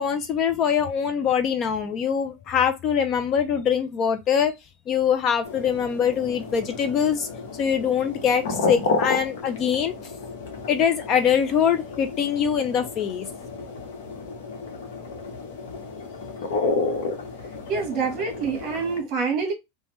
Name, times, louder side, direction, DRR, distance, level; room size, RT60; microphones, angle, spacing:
voice 1, 0.0-4.5 4.9-7.3 7.6-9.9 10.7-13.3, left 7 dB, 30° left, 0.3 m, -23 dB
sound 1, 5.4-19.0, left 4 dB, 80° left, 0.9 m, -31 dB
voice 2, 17.7-19.5, right 5 dB, 35° right, 1.2 m, -26 dB
3.2 x 2.1 x 3.0 m
supercardioid pair, 170°, 0 cm